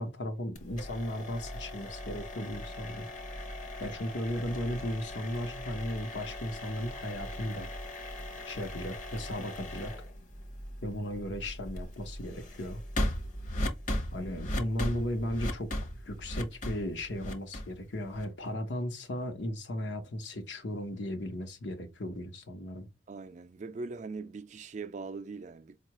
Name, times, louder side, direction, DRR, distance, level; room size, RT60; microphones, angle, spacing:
voice 1, 0.0-3.1 3.8-7.7 8.4-9.9 10.8-12.8 14.1-15.7 16.1-22.9, left 1 dB, 80° left, 0.9 m, -36 dB
sound 1, 0.6-18.5, left 1 dB, 45° left, 0.8 m, -38 dB
voice 2, 23.1-25.8, right 4 dB, 40° right, 0.4 m, -41 dB
4.6 x 2.3 x 3.0 m
head